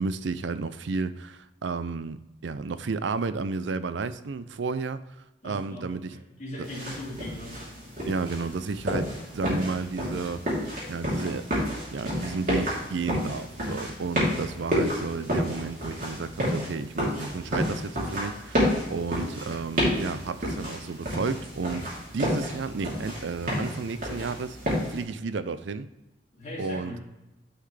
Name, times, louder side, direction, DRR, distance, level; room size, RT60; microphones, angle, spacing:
voice 1, 0.0-2.2 2.4-5.0 5.4-6.2 8.0-10.6 10.9-11.5 11.9-21.9 22.1-24.6 24.9-25.9 26.6-27.0, right 4 dB, 80° right, 13 dB, 0.5 m, -32 dB
voice 2, 5.4-5.9 6.4-7.6 26.3-27.0, left 1 dB, 40° left, -5 dB, 2.6 m, -38 dB
sound 1, 6.6-25.0, equal, 50° right, 3.0 m, -30 dB
9.9 x 5.7 x 3.3 m, 0.98 s
head